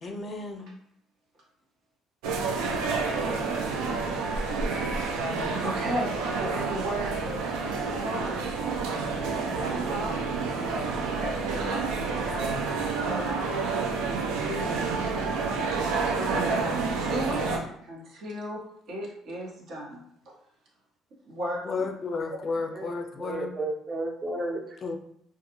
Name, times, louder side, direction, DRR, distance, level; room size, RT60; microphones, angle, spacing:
voice 1, 0.0-0.7 21.7-23.5 24.8-25.0, left 4 dB, 45° left, 5 dB, 0.4 m, -32 dB
sound 1, 2.2-17.6, right 4 dB, 85° right, 0.4 m, -29 dB
voice 2, 5.6-8.5 9.4-10.3 10.5-13.5 14.0-18.6 18.9-20.4 21.2-21.6, right 1 dB, 65° right, -3 dB, 1.0 m, -37 dB
voice 3, 23.2-24.8, right 1 dB, 30° right, 1 dB, 0.7 m, -33 dB
2.3 x 2.2 x 2.9 m, 0.69 s
supercardioid pair, 75°, 0 cm